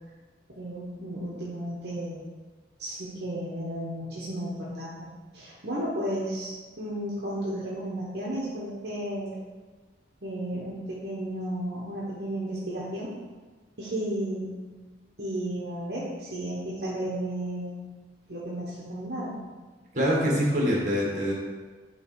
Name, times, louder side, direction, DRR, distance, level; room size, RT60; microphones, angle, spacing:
voice 1, 0.5-2.3 2.8-5.1 5.3-9.4 10.2-13.1 13.8-14.6 15.2-17.8 18.3-19.4, right 1 dB, 65° right, -6 dB, 1.2 m, -33 dB
voice 2, 19.9-21.3, equal, 45° right, -4 dB, 1.8 m, -24 dB
9.2 x 3.3 x 4.7 m, 1.3 s
head